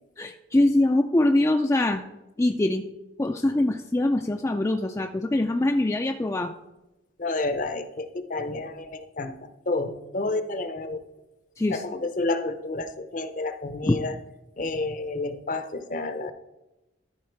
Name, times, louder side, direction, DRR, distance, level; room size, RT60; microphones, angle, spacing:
voice 1, 0.2-2.0 2.4-2.8 3.2-6.5 11.6-11.8 13.9-14.0, left 1 dB, 15° left, 4 dB, 0.3 m, -23 dB
voice 2, 7.2-11.0 11.7-14.2 14.6-16.3, left 2 dB, 45° left, 10 dB, 0.7 m, -30 dB
12.5 x 4.7 x 4.6 m, 0.97 s
head